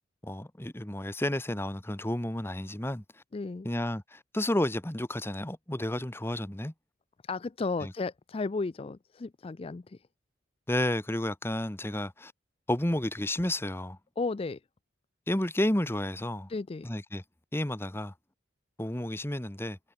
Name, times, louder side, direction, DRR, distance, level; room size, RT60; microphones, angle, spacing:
voice 1, 0.2-3.0 3.6-6.7 7.8-7.9 10.7-12.3 12.7-14.0 15.3-16.5 16.8-17.2 17.5-18.1 18.8-19.8, left 1 dB, 10° left, 1.2 m, -31 dB
voice 2, 3.3-3.7 7.2-10.1 14.2-14.6 16.5-16.9, left 3 dB, 30° left, 0.4 m, -34 dB
head